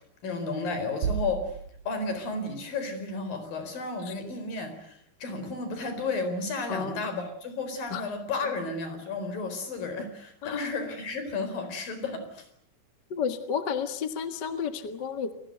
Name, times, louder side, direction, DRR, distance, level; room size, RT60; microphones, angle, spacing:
voice 1, 0.2-1.4 1.9-12.5, left 3 dB, 65° left, 8 dB, 6.1 m, -33 dB
sound 1, 1.0-2.8, right 7 dB, 80° right, 3.7 m, -34 dB
voice 2, 13.1-15.3, left 7 dB, 40° left, 9 dB, 1.6 m, -31 dB
29.0 x 20.0 x 7.9 m, 0.67 s
omnidirectional pair, 4.3 m